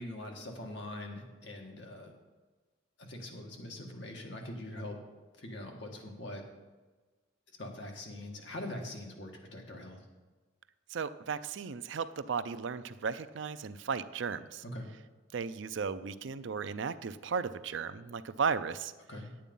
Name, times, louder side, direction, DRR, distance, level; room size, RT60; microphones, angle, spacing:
voice 1, 0.0-2.1 3.0-5.0 5.4-6.4 7.6-10.0 14.6-14.9 19.1-19.3, left 1 dB, 60° left, 1 dB, 1.8 m, -43 dB
voice 2, 10.9-14.6 15.3-18.9, right 5 dB, 70° right, 13 dB, 0.5 m, -35 dB
9.3 x 8.8 x 5.4 m, 1.3 s
head